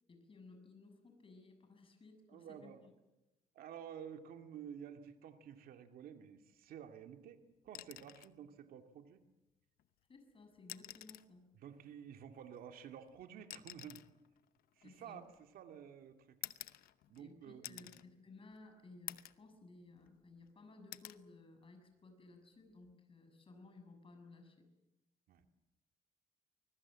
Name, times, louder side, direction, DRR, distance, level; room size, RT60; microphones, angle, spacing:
voice 1, 0.1-2.7 10.1-11.5 14.8-15.3 17.2-24.7, left 3 dB, 35° left, 6 dB, 6.8 m, -58 dB
voice 2, 2.3-2.8 3.5-9.2 11.5-14.1 14.8-16.4 17.1-17.9 25.3-25.4, right 8 dB, 85° right, 6 dB, 2.4 m, -52 dB
sound 1, 7.7-8.4 9.8-9.9 10.6-11.4 12.5-15.6 16.4-17.3 17.6-18.1 18.5-18.6 19.1-19.5 19.9-20.5 20.9-21.2 22.7-22.9, left 13 dB, 90° left, 0.8 m, -50 dB
24.5 x 21.5 x 7.6 m, 1.0 s
cardioid pair, 100°, 15 cm